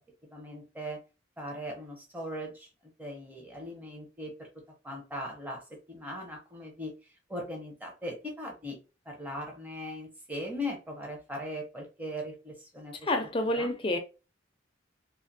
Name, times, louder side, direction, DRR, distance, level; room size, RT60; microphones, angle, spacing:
voice 1, 0.3-1.0 1.4-2.7 3.0-4.5 4.8-6.9 7.3-8.8 9.1-13.1 13.6-13.7, equal, 10° right, 0.7 m, -39 dB
voice 2, 13.0-14.0, left 1 dB, 25° left, 0.4 m, -28 dB
2.4 x 2.4 x 2.7 m
head